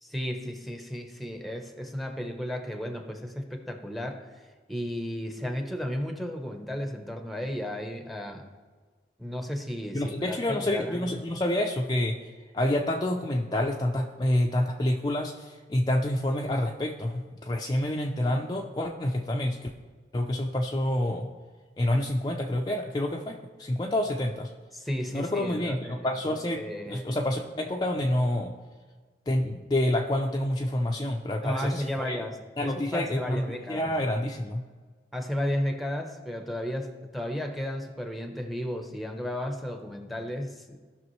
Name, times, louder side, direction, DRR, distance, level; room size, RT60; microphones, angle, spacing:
voice 1, 0.0-4.2 4.7-8.5 9.2-11.1 24.7-27.2 31.4-33.9 35.1-40.8, equal, ahead, 4 dB, 0.8 m, -34 dB
voice 2, 9.9-12.2 12.5-19.7 20.1-21.3 21.8-24.5 25.1-27.4 27.6-28.5 29.3-32.2 32.6-34.6, left 1 dB, 25° left, 1 dB, 0.5 m, -28 dB
16.5 x 6.0 x 3.1 m, 1.4 s
head